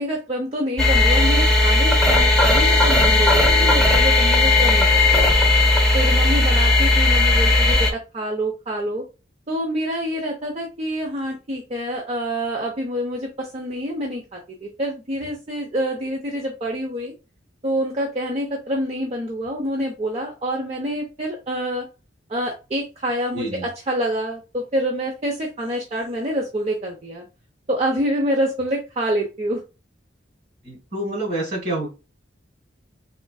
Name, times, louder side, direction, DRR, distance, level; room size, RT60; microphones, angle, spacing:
voice 1, 0.0-5.3 5.9-9.0 9.5-17.1 17.6-21.9 22.3-27.2 27.7-29.6, equal, 35° right, -1 dB, 0.6 m, -27 dB
sound 1, 0.8-7.9, left 2 dB, ahead, 0.8 m, -16 dB
voice 2, 23.3-23.7 30.6-31.9, right 1 dB, 60° right, -2 dB, 1.8 m, -27 dB
3.7 x 2.4 x 2.3 m, 0.29 s
head